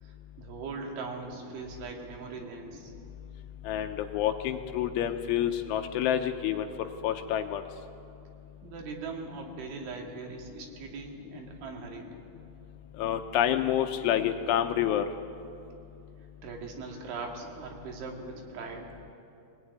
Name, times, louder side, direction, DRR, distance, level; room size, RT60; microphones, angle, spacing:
voice 1, 0.0-2.9 8.6-12.1 16.4-19.0, right 4 dB, 70° right, 1 dB, 4.6 m, -40 dB
voice 2, 3.7-6.7 7.0-7.6 13.0-15.0, left 10 dB, 80° left, 6 dB, 3.0 m, -28 dB
24.0 x 18.5 x 9.5 m, 2.7 s
omnidirectional pair, 5.9 m